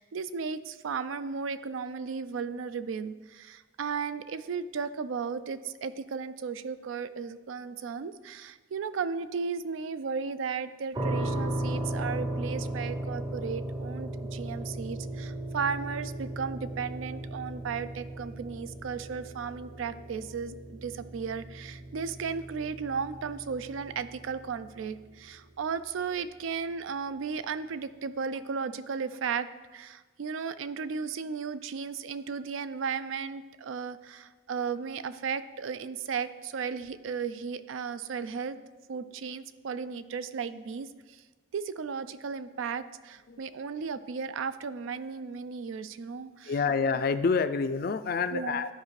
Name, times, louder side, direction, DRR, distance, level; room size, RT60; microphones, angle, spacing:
voice 1, 0.0-38.6 38.9-41.2 41.5-46.5 48.3-48.6, right 5 dB, 85° right, 13 dB, 0.4 m, -35 dB
sound 1, 10.9-25.8, right 1 dB, 20° right, 0.6 m, -36 dB
voice 2, 46.5-48.7, left 5 dB, 50° left, 11 dB, 0.3 m, -27 dB
12.0 x 5.0 x 3.2 m, 1.3 s
head